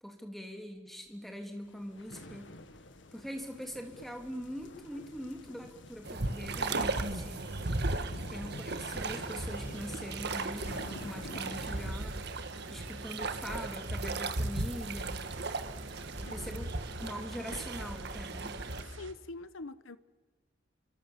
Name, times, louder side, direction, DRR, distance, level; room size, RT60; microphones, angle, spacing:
voice 1, 0.0-2.5 3.1-7.5 8.1-12.2 12.7-15.2 16.1-18.6, equal, ahead, 3.3 m, -43 dB
sound 1, 1.6-11.9, left 1 dB, 65° left, 1.8 m, -49 dB
sound 2, 6.0-18.8, right 2 dB, 55° right, 1.7 m, -36 dB
voice 2, 7.9-8.3 16.2-16.6 18.9-20.0, left 3 dB, 85° left, 1.0 m, -45 dB
sound 3, 8.7-19.1, right 2 dB, 70° right, 2.0 m, -49 dB
29.5 x 25.5 x 7.5 m
head